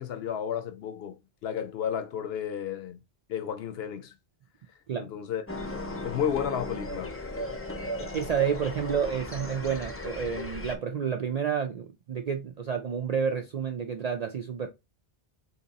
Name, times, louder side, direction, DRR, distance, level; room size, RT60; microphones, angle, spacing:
voice 1, 0.0-3.0 3.3-4.1 5.0-5.4 6.0-7.1, left 8 dB, 70° left, 0.8 m, -32 dB
sound 1, 5.5-10.7, left 1 dB, 20° left, 0.3 m, -36 dB
voice 2, 8.0-14.7, right 7 dB, 60° right, 0.4 m, -30 dB
2.9 x 2.8 x 3.9 m
omnidirectional pair, 1.1 m